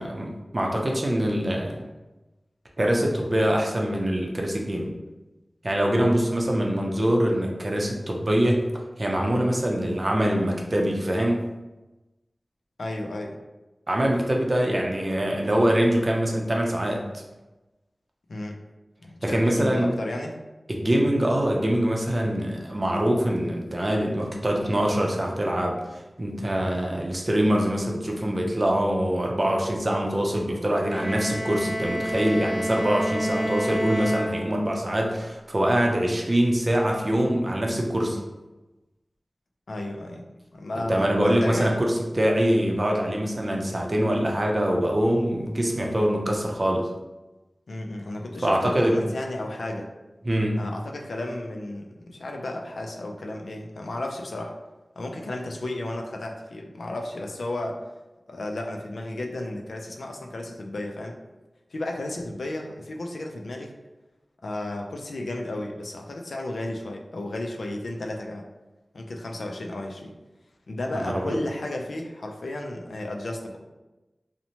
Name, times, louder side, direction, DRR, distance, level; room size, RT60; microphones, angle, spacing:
voice 1, 0.0-1.8 2.8-4.9 5.6-8.6 9.0-11.5 13.9-17.2 19.2-19.9 20.7-25.8 26.2-38.2 40.8-46.9 48.4-49.0 50.2-50.6 70.9-71.4, equal, 40° right, 0 dB, 0.5 m, -24 dB
voice 2, 12.8-13.4 18.3-18.6 19.0-20.3 39.7-40.2 40.5-41.8 47.7-49.9 50.5-54.6 55.0-57.8 58.3-61.2 61.7-63.7 64.4-68.5 68.9-70.1 70.7-73.6, left 1 dB, 85° left, 2 dB, 0.3 m, -33 dB
Bowed string instrument, 30.9-34.9, equal, 10° right, 0.8 m, -29 dB
2.7 x 2.1 x 2.8 m, 1.1 s
wide cardioid pair, 45°, 0 cm